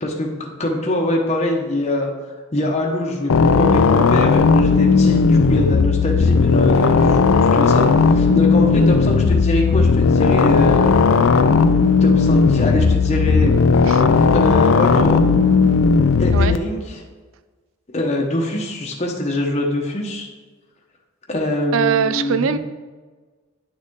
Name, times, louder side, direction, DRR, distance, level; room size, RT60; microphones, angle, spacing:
voice 1, 0.0-2.1 2.5-10.9 12.0-13.6 14.3-15.2 16.2-17.0 17.9-20.3 21.3-22.6, left 1 dB, 35° left, -1 dB, 1.0 m, -23 dB
sound 1, 3.3-16.6, left 4 dB, 75° left, 0.5 m, -15 dB
voice 2, 21.7-22.6, right 7 dB, 70° right, 12 dB, 0.4 m, -20 dB
9.8 x 6.5 x 3.7 m, 1.4 s
head